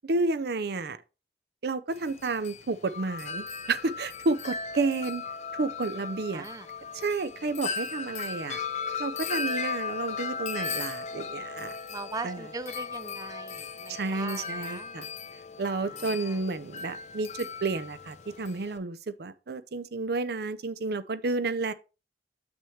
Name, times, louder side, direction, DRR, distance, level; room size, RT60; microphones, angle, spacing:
voice 1, 0.0-1.0 1.6-5.2 5.6-6.4 6.9-8.6 9.0-11.7 12.2-12.4 13.9-15.1 15.6-21.7, right 3 dB, 65° right, 0.6 m, -31 dB
Wind chime, 1.9-18.8, left 5 dB, 40° left, 0.6 m, -37 dB
voice 2, 6.3-6.7 11.9-15.0 15.9-16.4, right 4 dB, 20° right, 0.3 m, -40 dB
7.0 x 6.1 x 3.2 m
head